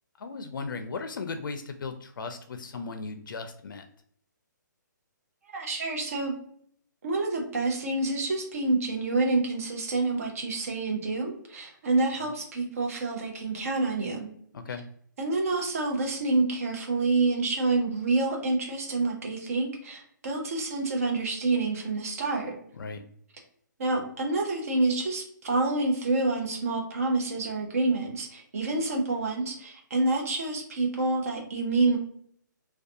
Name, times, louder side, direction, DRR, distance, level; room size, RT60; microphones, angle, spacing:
voice 1, 0.2-3.8 14.5-14.8 22.8-23.0, left 4 dB, 85° left, 7 dB, 0.4 m, -36 dB
voice 2, 5.5-6.3 7.0-14.3 15.2-22.5 23.8-32.0, right 3 dB, 45° right, 1 dB, 0.6 m, -28 dB
2.4 x 2.2 x 2.6 m, 0.65 s
hypercardioid pair, 170°, 11 cm